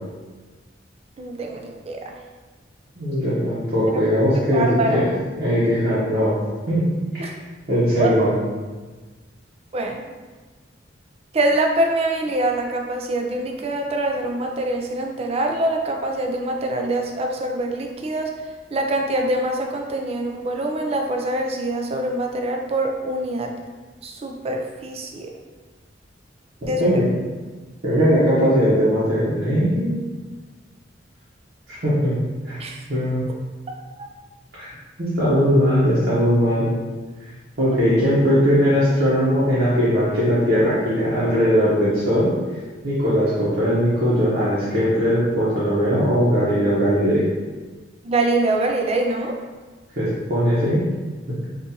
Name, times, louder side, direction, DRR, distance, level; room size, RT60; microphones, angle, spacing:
voice 1, 1.2-2.1 4.5-5.0 7.2-7.3 8.0-8.2 9.7-10.0 11.3-18.3 18.7-23.5 24.0-25.3 26.6-27.0 32.6-32.8 34.0-34.1 48.0-49.4, right 1 dB, 35° right, 2 dB, 0.4 m, -24 dB
voice 2, 3.0-5.1 5.4-6.4 6.7-6.8 7.1-7.3 7.7-8.3 26.6-27.0 27.8-30.1 31.8-32.1 32.5-32.6 32.9-33.2 34.6-34.7 35.0-36.7 37.6-42.3 42.8-47.3 50.0-50.8, equal, 65° right, -11 dB, 0.9 m, -19 dB
3.8 x 2.5 x 2.8 m, 1.3 s
head